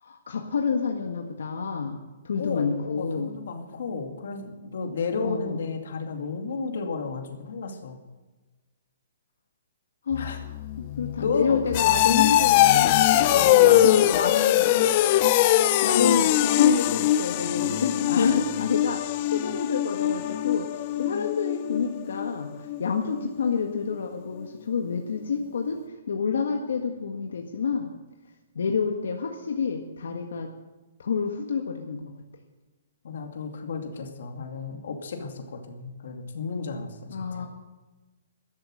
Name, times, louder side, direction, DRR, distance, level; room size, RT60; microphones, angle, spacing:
voice 1, 0.0-3.4 5.2-5.6 10.1-10.4 10.8-12.9 13.6-14.7 15.8-25.8 26.1-27.9 28.5-30.5 31.0-32.0 37.1-37.5, left 6 dB, 75° left, 3 dB, 1.7 m, -28 dB
voice 2, 2.4-8.0 10.2-10.4 11.2-11.6 13.1-14.3 18.1-18.4 33.0-37.5, left 4 dB, 55° left, 3 dB, 2.4 m, -33 dB
sound 1, 10.1-22.8 23.1-23.5 23.9-24.0, left 13 dB, 25° left, 0.4 m, -22 dB
14.0 x 13.0 x 6.4 m, 1.2 s
hypercardioid pair, 180°, 0 cm